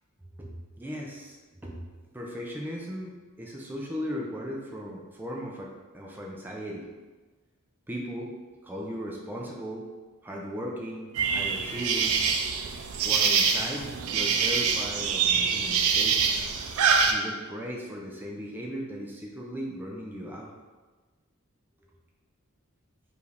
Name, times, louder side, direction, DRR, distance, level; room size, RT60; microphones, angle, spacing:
voice 1, 0.4-1.4 1.6-1.8 2.1-6.9 7.9-8.3 8.6-9.9 10.2-12.3 13.0-16.2 17.1-20.5, equal, 10° right, -2 dB, 0.4 m, -37 dB
sound 1, 11.1-17.1, right 6 dB, 80° right, 0.4 m, -25 dB
4.9 x 2.5 x 3.3 m, 1.3 s
head